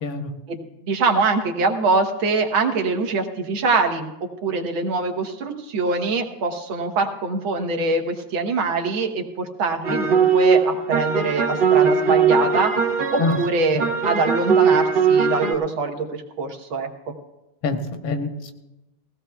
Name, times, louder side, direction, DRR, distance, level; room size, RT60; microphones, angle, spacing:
voice 1, 0.0-0.3 13.2-13.4 13.7-13.8 17.6-18.7, left 3 dB, 80° left, 6 dB, 1.8 m, -26 dB
voice 2, 0.8-4.1 4.4-12.7 13.1-16.1 16.4-16.9, right 3 dB, 75° right, 4 dB, 1.9 m, -23 dB
sound 1, 9.8-15.5, right 6 dB, 50° right, 0.7 m, -19 dB
20.0 x 16.5 x 2.3 m, 0.99 s
omnidirectional pair, 2.3 m